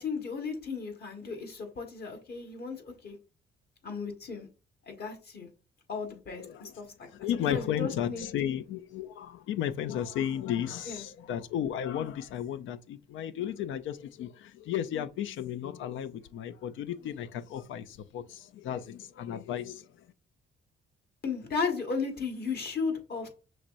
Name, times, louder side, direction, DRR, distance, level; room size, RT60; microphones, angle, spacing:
voice 1, 0.0-3.2 3.8-4.5 4.9-5.5 5.9-8.3 10.9-11.1 21.2-23.3, left 5 dB, 55° left, 1.5 m, -35 dB
voice 2, 6.4-6.7 7.1-19.8, left 10 dB, 75° left, 0.5 m, -34 dB
5.8 x 3.1 x 2.5 m
cardioid pair, 90°, 20 cm